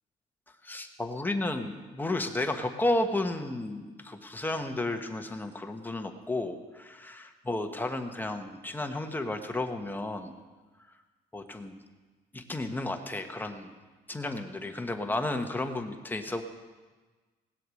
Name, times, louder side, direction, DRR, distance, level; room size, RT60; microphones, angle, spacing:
voice 1, 0.6-10.3 11.3-11.7 12.3-13.7 14.1-16.4, left 2 dB, 10° left, 5 dB, 1.2 m, -32 dB
18.5 x 7.9 x 6.4 m, 1.3 s
cardioid pair, 110°, 17 cm